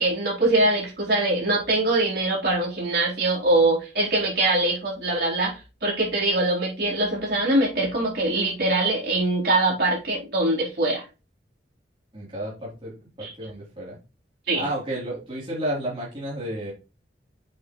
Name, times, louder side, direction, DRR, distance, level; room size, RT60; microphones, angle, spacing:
voice 1, 0.0-11.0 13.2-13.3 14.5-14.6, right 2 dB, 60° right, -4 dB, 4.0 m, -23 dB
voice 2, 12.1-14.0 14.5-16.7, right 1 dB, 30° right, -6 dB, 3.4 m, -32 dB
8.3 x 6.0 x 3.1 m, 0.31 s
head